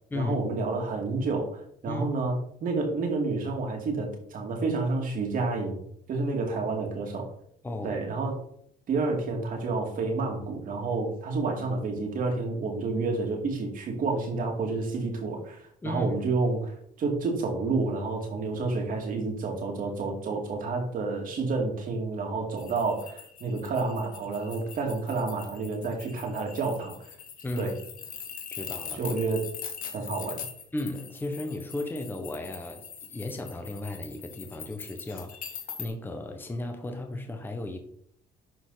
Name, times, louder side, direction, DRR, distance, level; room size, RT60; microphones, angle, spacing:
voice 1, 0.1-5.8 6.1-7.3 7.8-8.4 8.9-27.0 27.6-27.7 28.9-29.5 29.9-30.5, right 3 dB, 55° right, 2.4 m, -29 dB
voice 2, 7.6-8.0 15.8-16.1 27.4-27.7 28.5-29.1 30.7-37.8, left 2 dB, 10° left, 1.0 m, -35 dB
sound 1, 22.6-35.9, left 7 dB, 55° left, 1.5 m, -42 dB
11.5 x 4.1 x 4.1 m
cardioid pair, 110°, 17 cm